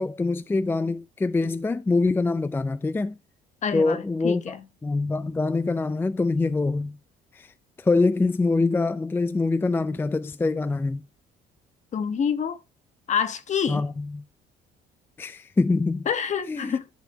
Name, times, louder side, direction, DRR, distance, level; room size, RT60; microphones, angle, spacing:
voice 1, 0.0-3.2 3.7-4.6 4.8-7.0 7.3-11.0 13.7-14.2 15.2-16.1 16.5-16.8, left 3 dB, 15° left, 0.4 m, -24 dB
voice 2, 3.6-4.6 11.9-12.6 13.1-13.8 16.1-16.8, left 7 dB, 45° left, 1.2 m, -27 dB
11.5 x 4.1 x 5.0 m
cardioid pair, 110°, 17 cm